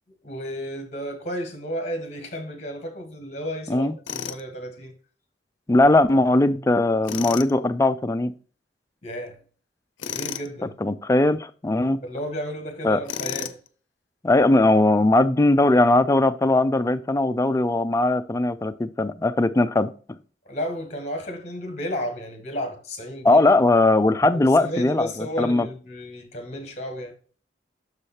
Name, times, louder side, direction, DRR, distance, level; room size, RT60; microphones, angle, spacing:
voice 1, 0.2-4.9 9.0-9.4 10.0-10.8 12.0-13.5 20.4-23.4 24.3-27.1, equal, 35° left, 1.5 m, -33 dB
Tools, 4.1-4.4 7.0-7.5 10.0-10.5 13.1-13.7, left 8 dB, 85° left, 0.5 m, -32 dB
voice 2, 5.7-8.3 10.6-12.0 12.8-13.0 14.2-20.2 23.2-25.7, left 2 dB, 15° left, 0.3 m, -19 dB
6.3 x 4.9 x 4.3 m
head